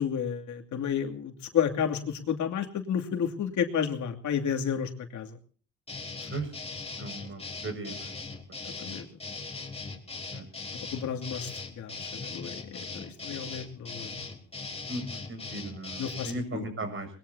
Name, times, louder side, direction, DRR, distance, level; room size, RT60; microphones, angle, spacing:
voice 1, 0.0-5.4 8.6-9.1 10.9-11.5 11.8-14.2 16.0-16.7, left 8 dB, 70° left, 3 dB, 2.7 m, -31 dB
sound 1, 5.9-16.4, left 3 dB, 20° left, 4.0 m, -39 dB
voice 2, 7.0-8.1 8.9-9.0 10.3-10.4 14.9-15.0 15.3-17.1, right 2 dB, 45° right, 8 dB, 7.0 m, -37 dB
22.5 x 21.0 x 2.8 m, 0.41 s
cardioid pair, 90°, 30 cm